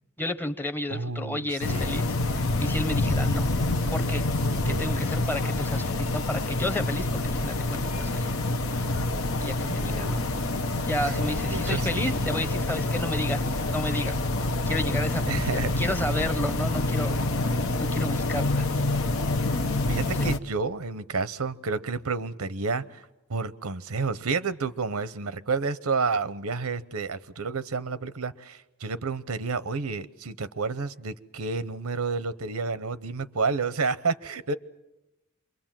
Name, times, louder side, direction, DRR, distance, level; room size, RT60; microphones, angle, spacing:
voice 1, 0.2-3.5 3.9-4.2 4.7-8.3 9.4-10.3 10.8-14.2 14.7-17.2 17.5-18.7 20.1-20.3, left 1 dB, 10° left, 0.9 m, -32 dB
voice 2, 0.9-2.1 4.7-5.3 9.7-10.4 11.1-12.3 15.3-15.8 19.9-23.0 23.3-34.5, right 4 dB, 90° right, 0.9 m, -30 dB
sound 1, 1.6-20.4, left 2 dB, 70° left, 0.9 m, -27 dB
27.0 x 23.0 x 7.5 m
head